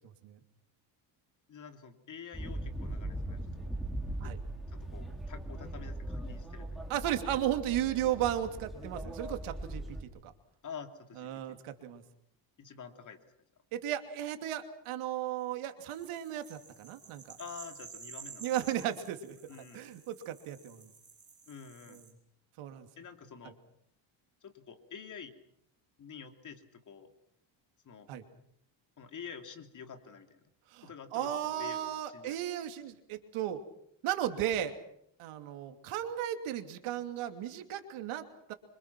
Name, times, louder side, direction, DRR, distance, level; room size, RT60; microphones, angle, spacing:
voice 1, 1.5-3.8 4.2-4.3 4.7-6.8 10.6-11.6 12.6-13.2 17.4-18.5 19.5-19.9 21.5-22.0 23.0-23.6 24.4-25.3 26.0-27.1 27.8-28.1 29.0-30.4 30.8-32.4, left 6 dB, 35° left, 6 dB, 2.9 m, -48 dB
sound 1, 2.3-10.0, right 1 dB, ahead, 4.4 m, -40 dB
voice 2, 6.9-10.0 10.2-10.3 11.2-12.0 13.7-17.4 18.4-20.9 21.9-22.0 22.6-22.9 28.1-28.2 30.7-33.6 34.0-34.7 35.2-38.5, right 11 dB, 80° right, 7 dB, 2.8 m, -35 dB
sound 2, 15.9-22.1, right 6 dB, 20° right, 5.2 m, -52 dB
27.0 x 25.5 x 6.0 m, 0.73 s
cardioid pair, 150°, 49 cm